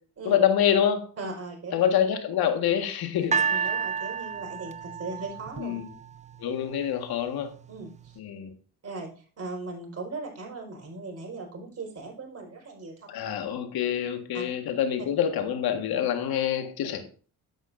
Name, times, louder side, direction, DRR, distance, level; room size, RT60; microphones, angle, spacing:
voice 1, 0.2-1.0 1.7-3.5 5.6-5.9 6.4-7.5 8.2-8.5 13.1-17.1, left 9 dB, 65° left, 1.7 m, -26 dB
voice 2, 1.2-1.8 3.5-5.8 7.7-8.2 8.8-13.2 14.3-14.4 15.0-15.1, right 3 dB, 40° right, 4.8 m, -38 dB
sound 1, 3.3-6.5 7.3-7.4, right 6 dB, 20° right, 0.3 m, -30 dB
10.5 x 8.0 x 2.6 m
supercardioid pair, 70°, 39 cm